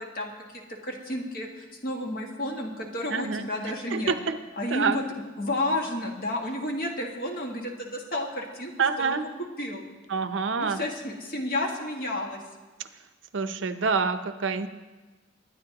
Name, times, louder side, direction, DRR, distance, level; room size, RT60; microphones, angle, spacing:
voice 1, 0.0-4.1 4.6-5.0 5.4-8.7 9.0-9.2 9.6-9.8 10.6-12.4, left 1 dB, 50° left, 1 dB, 1.7 m, -31 dB
voice 2, 3.1-3.5 3.9-4.4 4.7-5.0 8.8-9.2 10.1-10.8 13.3-14.7, right 5 dB, 70° right, 10 dB, 0.6 m, -26 dB
21.5 x 9.6 x 2.9 m, 1.2 s
head